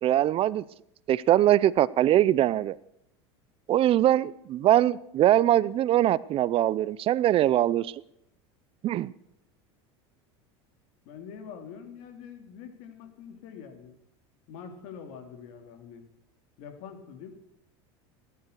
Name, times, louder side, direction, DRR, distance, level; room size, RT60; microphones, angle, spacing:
voice 1, 0.0-0.6 1.1-2.8 3.7-7.9 8.8-9.1, right 13 dB, 40° right, 20 dB, 0.5 m, -22 dB
voice 2, 11.0-13.9 14.5-16.0 16.6-17.3, left 7 dB, 65° left, 6 dB, 2.8 m, -44 dB
18.5 x 11.0 x 6.7 m, 0.78 s
supercardioid pair, 100°, 14 cm